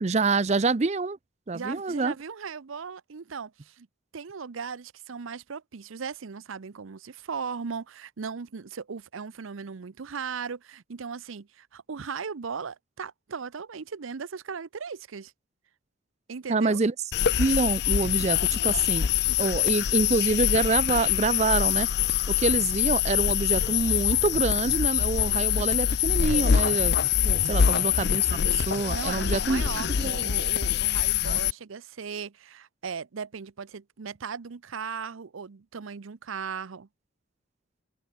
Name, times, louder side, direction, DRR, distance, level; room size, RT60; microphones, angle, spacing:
voice 1, 0.0-1.2 1.5-2.1 16.5-16.9 17.4-19.1 19.4-21.9 22.4-27.0 27.2-29.6 29.9-30.3 31.2-31.4, right 3 dB, 35° right, 0.5 m, -26 dB
voice 2, 1.5-3.9 4.1-15.3 16.3-16.8 27.5-28.0 28.9-36.9, right 6 dB, 80° right, 0.6 m, -37 dB
sound 1, 17.1-31.5, left 9 dB, 55° left, 0.5 m, -24 dB
head